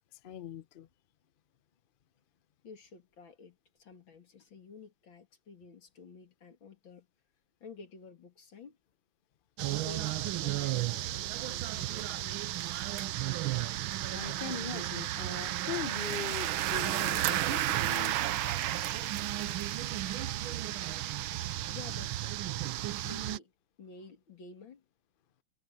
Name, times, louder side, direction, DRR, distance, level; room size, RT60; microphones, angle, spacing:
voice 1, 0.2-0.9 13.7-13.8 14.1-21.7, left 8 dB, 90° left, 0.4 m, -43 dB
voice 2, 2.6-7.1 7.6-8.8 9.6-12.7 21.7-22.7 23.0-23.5 23.8-24.8, left 4 dB, 70° left, 3.3 m, -51 dB
sound 1, 9.6-23.4, right 14 dB, 90° right, 1.5 m, -33 dB
omnidirectional pair, 2.2 m